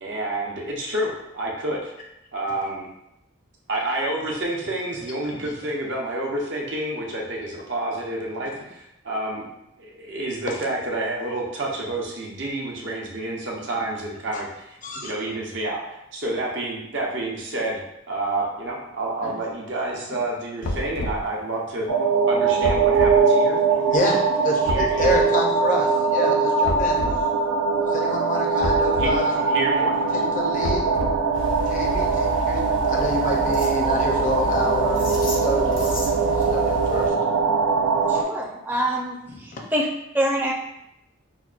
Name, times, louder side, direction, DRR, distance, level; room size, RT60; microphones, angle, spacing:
voice 1, 0.0-1.9 2.3-2.9 3.7-9.4 9.8-17.8 18.1-21.9 22.3-23.6 24.0-24.2 24.7-24.9 29.0-30.0, right 2 dB, 60° right, -3 dB, 0.7 m, -29 dB
sound 1, 20.6-21.3 22.6-23.2 24.6-25.2 26.6-27.2 28.6-29.2 30.6-31.3, left 1 dB, 90° left, 0.5 m, -29 dB
sound 2, 21.9-38.2, right 4 dB, 90° right, 0.4 m, -21 dB
voice 2, 23.7-24.2 24.4-27.0 27.9-29.4 30.1-30.8 31.7-36.1 36.4-37.1 38.1-38.2 39.5-39.6, left 1 dB, 40° left, 0 dB, 0.5 m, -27 dB
sound 3, 31.3-37.1, left 2 dB, 70° left, 0.8 m, -32 dB
voice 3, 38.1-39.9 40.1-40.5, right 1 dB, 10° right, -3 dB, 0.5 m, -25 dB
5.8 x 2.2 x 2.4 m, 0.83 s
head